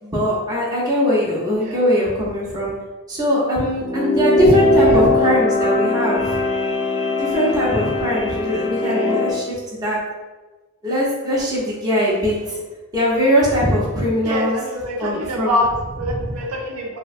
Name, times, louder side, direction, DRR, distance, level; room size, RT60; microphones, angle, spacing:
voice 1, 0.0-2.7 3.1-6.4 7.2-10.0 10.8-12.6 12.9-14.6 15.0-15.6, equal, 15° right, -6 dB, 0.6 m, -20 dB
sound 1, 3.6-9.4, left 1 dB, 80° left, 0.7 m, -20 dB
voice 2, 4.8-5.1 8.8-9.2 14.2-17.0, equal, 80° right, 0 dB, 0.5 m, -25 dB
3.2 x 2.1 x 2.5 m, 1.2 s
head